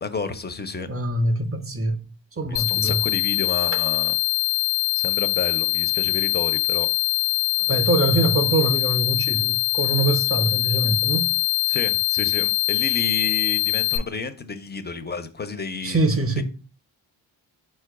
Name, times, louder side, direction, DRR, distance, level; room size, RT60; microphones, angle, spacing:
voice 1, 0.0-0.9 2.5-4.1 5.0-6.9 11.7-16.0 16.4-16.5, left 4 dB, 25° left, 0.4 m, -31 dB
voice 2, 0.9-2.0 2.4-3.0 3.7-3.8 7.6-11.3 15.8-16.4, right 2 dB, 30° right, 0.6 m, -23 dB
sound 1, 2.6-14.0, left 20 dB, 75° left, 0.5 m, -23 dB
4.4 x 2.3 x 4.6 m
cardioid pair, 80°, 47 cm